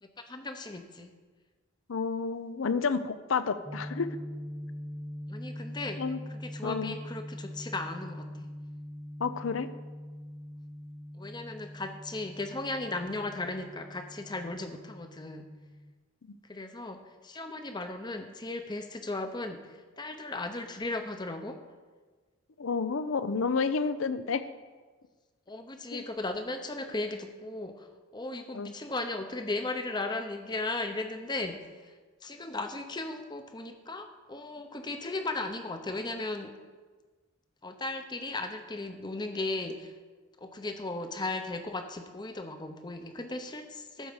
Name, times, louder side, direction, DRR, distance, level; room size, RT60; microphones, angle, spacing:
voice 1, 0.0-1.1 5.3-6.0 6.3-8.5 11.2-15.5 16.5-21.6 25.5-31.9 32.2-36.5 37.6-39.9 40.4-44.1, left 2 dB, 20° left, 7 dB, 0.8 m, -36 dB
voice 2, 1.9-4.1 6.0-6.2 6.6-6.9 9.2-9.7 16.3-16.4 22.6-24.4 25.9-26.0 28.5-28.7, left 5 dB, 70° left, 13 dB, 0.6 m, -30 dB
sound 1, 3.6-15.9, equal, ahead, 0.3 m, -43 dB
12.5 x 4.8 x 7.2 m, 1.4 s
head